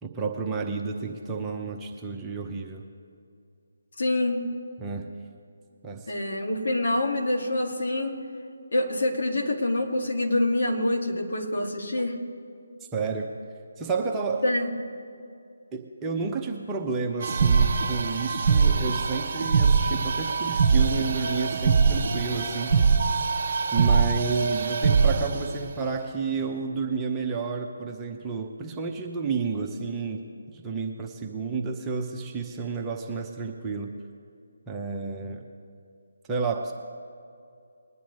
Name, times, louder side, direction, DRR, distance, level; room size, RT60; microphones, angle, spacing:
voice 1, 0.0-2.8 4.8-5.1 5.8-6.1 12.9-13.3 13.8-14.4 15.7-22.9 23.7-30.2 30.5-33.9 34.7-35.4 36.3-36.7, right 5 dB, 10° right, 0 dB, 0.9 m, -31 dB
voice 2, 4.0-4.4 6.1-8.1 8.7-12.2 14.4-14.7, left 1 dB, 60° left, 0 dB, 2.4 m, -26 dB
sound 1, 17.2-25.4, right 5 dB, 40° right, 1.3 m, -23 dB
21.5 x 9.9 x 3.2 m, 2.4 s
figure-of-eight pair, 155°, 0 cm